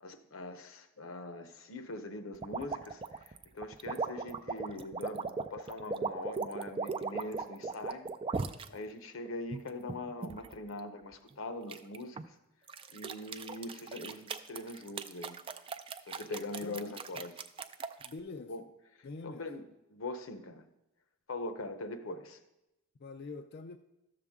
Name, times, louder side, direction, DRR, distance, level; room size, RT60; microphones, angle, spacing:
voice 1, 0.0-8.1 8.7-12.3 12.9-15.4 16.1-17.3 18.5-18.6 19.2-19.6 19.9-20.7 21.3-22.4, left 2 dB, 90° left, 9 dB, 0.8 m, -42 dB
sound 1, 2.4-8.7 9.3-10.6 11.7-12.3 12.7-18.1, right 4 dB, 25° right, 0.4 m, -38 dB
voice 2, 16.6-17.2 18.0-18.5 19.0-19.5 23.0-23.8, left 3 dB, 50° left, 7 dB, 0.4 m, -45 dB
12.5 x 6.8 x 3.6 m, 0.91 s
head